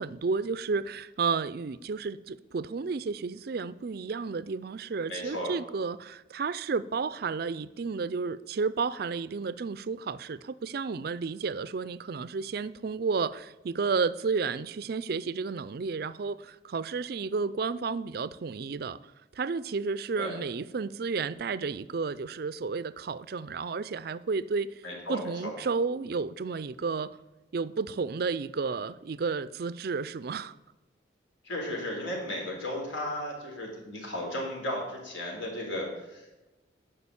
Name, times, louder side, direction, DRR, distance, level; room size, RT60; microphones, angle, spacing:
voice 1, 0.0-19.0 19.4-24.7 25.1-27.2 27.5-30.5, right 4 dB, 55° right, 0.4 m, -32 dB
voice 2, 5.1-5.5 20.1-20.4 24.8-25.5 31.4-36.5, left 1 dB, 75° left, 3.6 m, -35 dB
11.5 x 5.1 x 8.5 m
head